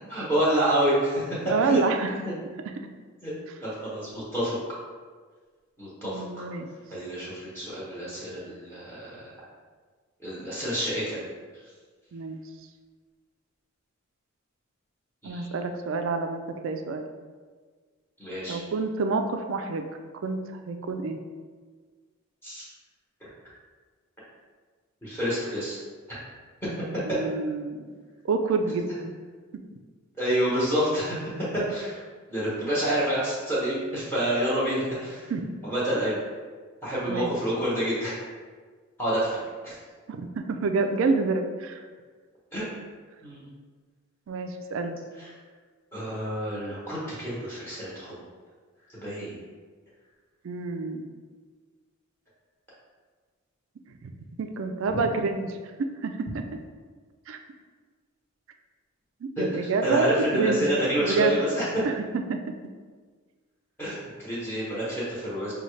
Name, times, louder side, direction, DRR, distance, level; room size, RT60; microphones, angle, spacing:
voice 1, 0.1-1.8 2.2-2.4 3.2-3.3 3.6-4.5 5.8-6.2 6.9-9.3 10.2-11.2 15.2-15.6 18.2-18.6 22.4-22.7 25.0-25.8 26.1-26.2 27.1-27.2 30.2-32.0 32.3-35.3 35.6-36.2 36.8-38.2 39.0-39.4 39.6-39.7 42.5-42.7 43.2-43.4 45.2-45.3 45.9-48.2 48.9-49.3 59.4-61.8 63.8-65.5, right 1 dB, 10° left, -9 dB, 1.0 m, -28 dB
voice 2, 1.5-2.2 2.7-2.8 6.0-6.7 12.1-12.4 15.2-17.1 18.5-19.9 20.2-21.2 27.0-27.9 28.2-29.1 29.5-29.6 35.3-35.5 37.1-37.3 40.1-41.8 44.3-45.0 50.4-51.1 54.0-54.1 54.4-55.6 56.0-56.3 57.3-57.4 59.2-60.6 61.0-61.4 61.8-62.5, right 4 dB, 60° right, 5 dB, 0.3 m, -28 dB
5.4 x 2.3 x 3.1 m, 1.5 s
head